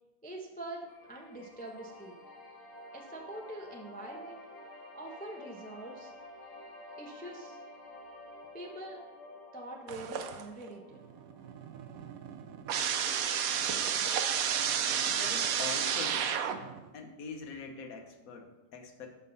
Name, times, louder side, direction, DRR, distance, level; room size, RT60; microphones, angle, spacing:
voice 1, 0.2-2.2 2.9-4.4 4.9-6.1 7.0-7.6 8.5-9.0 9.5-11.0, right 1 dB, 15° left, 0 dB, 0.3 m, -44 dB
sound 1, 0.9-11.9, left 1 dB, 85° left, 2.3 m, -50 dB
sound 2, 9.9-10.7 11.0-16.9, right 8 dB, 70° right, 0.8 m, -31 dB
voice 2, 15.1-16.3 16.9-19.1, left 5 dB, 50° left, 5 dB, 1.2 m, -43 dB
12.5 x 5.5 x 4.0 m, 1.1 s
omnidirectional pair, 2.2 m